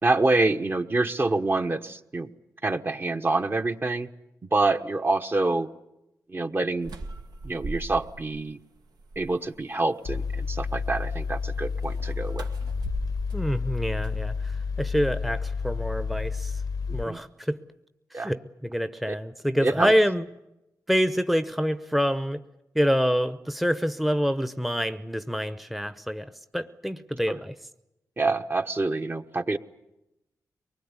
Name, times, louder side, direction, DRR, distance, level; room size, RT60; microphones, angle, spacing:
voice 1, 0.0-2.3 2.6-4.1 4.5-5.7 6.3-6.9 7.4-8.6 9.2-12.5 16.9-17.2 18.1-18.3 19.1-19.2 19.6-19.9 27.3-27.4 28.2-29.6, right 2 dB, 35° right, 7 dB, 1.1 m, -26 dB
sound 1, 6.8-8.4 8.8-9.6 11.8-14.7, right 2 dB, 85° right, 2.0 m, -40 dB
Mechanical fan, 10.1-17.0, left 5 dB, 75° left, 0.8 m, -30 dB
voice 2, 13.3-16.6 16.9-17.6 18.1-20.3 20.9-22.4 22.7-27.5, equal, ahead, 11 dB, 0.8 m, -26 dB
23.5 x 20.5 x 9.7 m, 0.92 s
cardioid pair, 75°, 7 cm